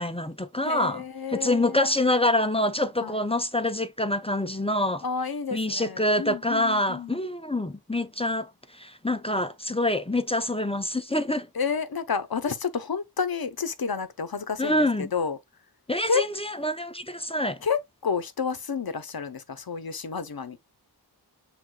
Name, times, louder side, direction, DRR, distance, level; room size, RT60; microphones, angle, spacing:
voice 1, 0.0-1.0 1.3-5.0 5.5-11.5 14.6-15.1 15.9-17.6, left 1 dB, 15° left, 0.5 m, -26 dB
voice 2, 0.6-1.9 3.0-3.2 5.0-7.2 11.5-15.4 16.1-16.2 17.6-20.6, left 5 dB, 65° left, 0.8 m, -30 dB
6.3 x 3.4 x 2.2 m
wide cardioid pair, 50°, 39 cm